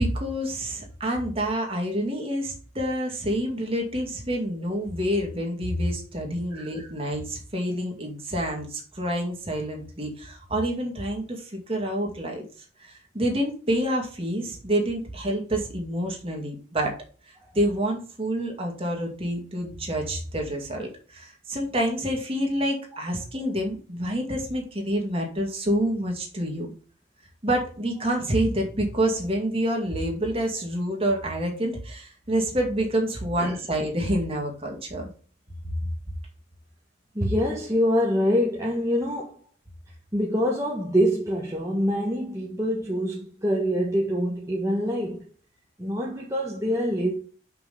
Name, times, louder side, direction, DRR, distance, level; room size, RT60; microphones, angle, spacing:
voice 1, 0.0-12.4 12.9-16.9 17.5-26.7 27.4-35.1, right 1 dB, 30° right, 2.2 m, -27 dB
voice 2, 37.1-39.3 40.1-45.3 45.8-47.1, equal, 15° right, 1.3 m, -25 dB
5.8 x 5.7 x 6.8 m
head